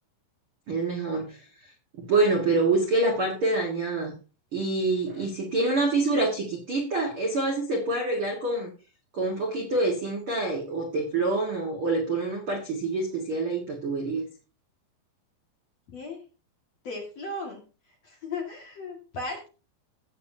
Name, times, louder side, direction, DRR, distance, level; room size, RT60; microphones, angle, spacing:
voice 1, 0.7-1.4 2.0-4.1 4.5-8.7 9.1-14.2, right 2 dB, 65° right, 0 dB, 1.3 m, -26 dB
voice 2, 15.9-16.2 16.8-17.6 18.0-19.5, left 2 dB, 50° left, 0 dB, 2.3 m, -36 dB
15.5 x 8.3 x 2.7 m, 0.33 s
omnidirectional pair, 5.2 m